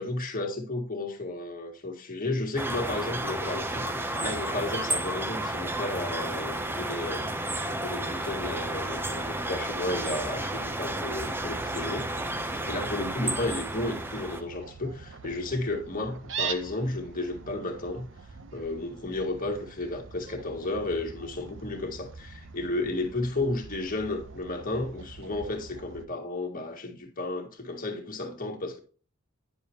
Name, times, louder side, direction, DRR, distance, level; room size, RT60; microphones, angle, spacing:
voice 1, 0.0-7.4 7.6-12.1 12.7-18.1 18.5-28.8, left 2 dB, 40° left, 1.7 m, -33 dB
sound 1, 2.6-14.4, right 1 dB, 10° right, 0.6 m, -32 dB
Fowl, 8.2-26.1, right 6 dB, 60° right, 0.8 m, -43 dB
10.0 x 7.0 x 2.9 m
head